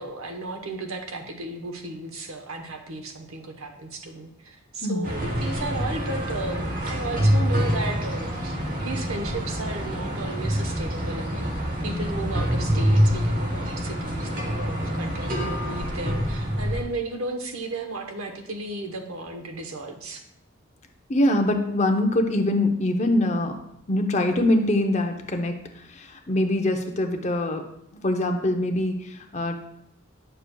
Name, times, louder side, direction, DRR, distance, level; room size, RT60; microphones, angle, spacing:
voice 1, 0.0-8.6 8.8-11.5 11.8-20.2, right 2 dB, 90° right, 4 dB, 1.0 m, -34 dB
sound 1, 5.0-16.8, equal, 40° right, 1.1 m, -26 dB
voice 2, 21.1-23.6 23.9-27.6 27.9-29.6, left 1 dB, 35° left, 5 dB, 0.6 m, -24 dB
9.1 x 6.7 x 2.3 m, 0.76 s
head